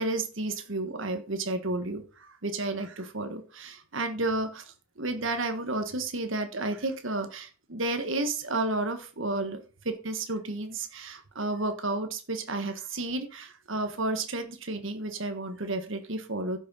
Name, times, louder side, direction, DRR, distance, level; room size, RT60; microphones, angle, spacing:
voice 1, 0.0-9.6 9.8-16.6, right 2 dB, 70° right, 7 dB, 1.6 m, -32 dB
11.0 x 6.4 x 5.6 m, 0.36 s
head